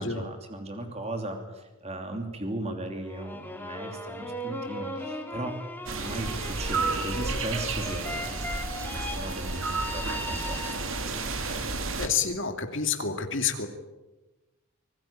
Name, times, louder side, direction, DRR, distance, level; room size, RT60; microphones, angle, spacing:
voice 1, 0.0-5.5 5.9-8.5 8.9-10.6, right 1 dB, 30° right, 5 dB, 2.9 m, -37 dB
sound 1, 3.0-11.2, left 1 dB, 10° left, 2.5 m, -38 dB
sound 2, 5.9-12.1, right 3 dB, 65° right, 2.8 m, -32 dB
voice 2, 11.2-11.7 12.0-13.7, left 6 dB, 55° left, 6 dB, 2.6 m, -29 dB
25.5 x 19.5 x 8.9 m, 1.1 s
head